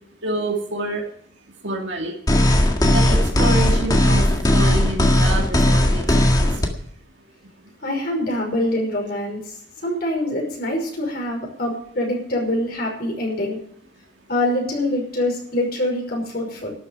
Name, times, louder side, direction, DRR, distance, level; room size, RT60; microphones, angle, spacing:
voice 1, 0.2-1.0 1.6-2.2 2.8-6.5, right 2 dB, 75° right, 0 dB, 2.4 m, -27 dB
sound 1, 2.3-6.7, left 1 dB, 20° left, 1.8 m, -17 dB
voice 2, 7.8-9.5 9.8-13.6 14.3-16.7, left 1 dB, 55° left, 0 dB, 5.7 m, -24 dB
12.5 x 8.3 x 9.5 m, 0.65 s
head